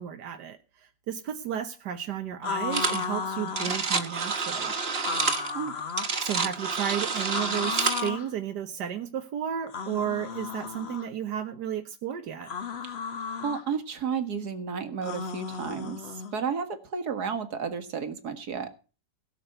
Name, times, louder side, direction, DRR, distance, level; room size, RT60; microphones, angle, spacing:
voice 1, 0.0-4.7 5.5-5.6 6.2-12.5, right 9 dB, 90° right, 6 dB, 1.6 m, -33 dB
sound 1, 2.4-3.8 5.0-6.2 7.3-8.3 9.7-11.1 12.4-13.6 15.0-16.3, left 5 dB, 45° left, 1.2 m, -34 dB
sound 2, 2.7-3.1 3.3-8.1, right 4 dB, 40° right, 1.5 m, -29 dB
voice 2, 13.4-18.7, right 6 dB, 75° right, 9 dB, 2.2 m, -32 dB
16.5 x 6.1 x 8.0 m, 0.35 s
omnidirectional pair, 1.7 m